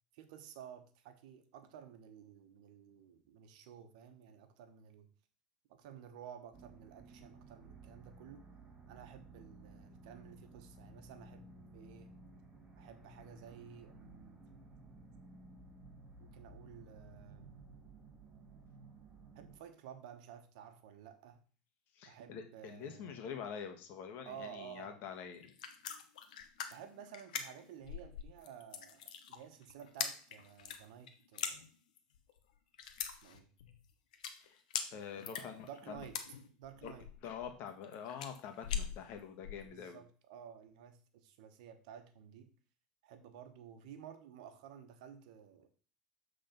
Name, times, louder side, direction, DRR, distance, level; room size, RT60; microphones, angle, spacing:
voice 1, 0.1-5.1 5.7-8.4 8.9-12.1 12.8-14.4 16.2-17.5 19.3-21.4 22.1-23.2 24.2-25.0 26.7-31.6 33.2-33.5 35.2-36.2 36.6-37.1 39.6-42.5 43.0-45.7, right 8 dB, 70° right, 8 dB, 1.2 m, -53 dB
sound 1, 6.5-19.6, right 2 dB, 15° right, 1.9 m, -56 dB
voice 2, 21.9-25.5 34.4-34.6 34.9-36.0 36.8-36.9 37.2-40.0, left 7 dB, 55° left, 6 dB, 1.5 m, -46 dB
sound 2, 25.3-39.7, left 8 dB, 85° left, 0.9 m, -43 dB
7.7 x 3.9 x 5.3 m, 0.40 s
hypercardioid pair, 100°, 4 cm